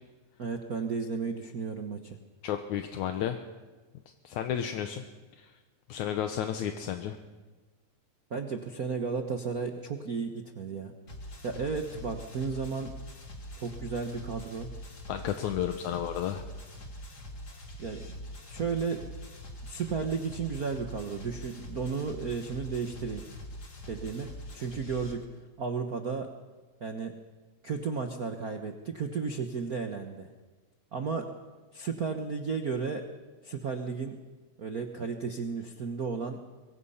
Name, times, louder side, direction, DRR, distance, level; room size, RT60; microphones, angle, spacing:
voice 1, 0.4-2.2 8.3-10.9 11.4-12.9 13.6-14.7 17.8-18.1 18.5-19.0 19.6-23.2 23.9-25.3 25.6-26.3 26.8-27.1 27.6-30.3 30.9-31.3 31.7-33.0 33.4-34.2 34.6-36.4, right 5 dB, 85° right, 5 dB, 0.8 m, -33 dB
voice 2, 2.4-3.4 4.2-5.0 5.4-5.5 5.9-7.2 15.1-16.4, left 10 dB, 75° left, 6 dB, 2.3 m, -32 dB
sound 1, 11.1-25.1, equal, 35° left, 2.8 m, -44 dB
24.5 x 22.5 x 5.6 m, 1.3 s
omnidirectional pair, 3.5 m